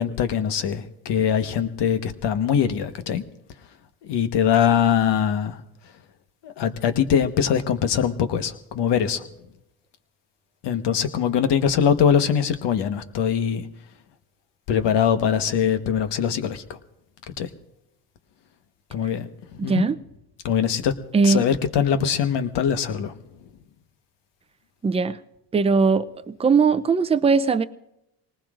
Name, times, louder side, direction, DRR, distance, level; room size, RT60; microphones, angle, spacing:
voice 1, 0.0-3.2 4.0-5.6 6.4-9.2 10.6-13.7 14.7-16.8 17.4-17.5 18.9-19.3 19.6-19.9 20.4-20.9 21.2-23.1, left 8 dB, 60° left, 1.3 m, -22 dB
voice 2, 24.8-25.2 25.5-27.6, right 4 dB, 15° right, 0.5 m, -19 dB
25.5 x 19.5 x 2.5 m
supercardioid pair, 90°, 47 cm